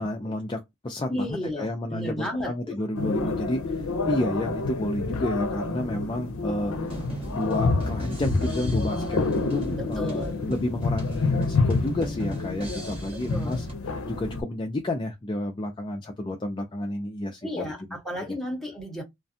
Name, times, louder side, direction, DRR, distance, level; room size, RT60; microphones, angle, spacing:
voice 1, 0.0-17.7, left 1 dB, 20° left, 0.3 m, -31 dB
voice 2, 1.1-2.7 3.2-3.3 9.8-10.4 13.1-13.6 17.4-19.0, left 1 dB, ahead, 0.8 m, -33 dB
sound 1, 2.9-14.4, left 3 dB, 85° left, 0.5 m, -28 dB
sound 2, 6.9-13.7, right 1 dB, 25° right, 1.1 m, -39 dB
2.4 x 2.2 x 2.6 m
head